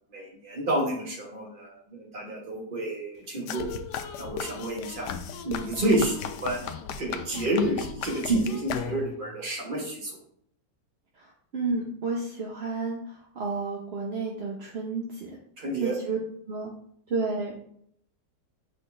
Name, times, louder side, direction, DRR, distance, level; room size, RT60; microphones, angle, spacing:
voice 1, 0.1-3.7 4.2-5.1 5.4-6.6 7.0-10.2 15.6-15.9, right 1 dB, 30° right, -1 dB, 1.4 m, -29 dB
sound 1, 3.5-9.3, left 7 dB, 75° left, 1.1 m, -36 dB
voice 2, 11.2-15.4 15.8-16.2 16.5-16.7 17.1-17.6, right 3 dB, 50° right, -2 dB, 0.8 m, -31 dB
7.6 x 4.0 x 3.3 m, 0.67 s
omnidirectional pair, 1.9 m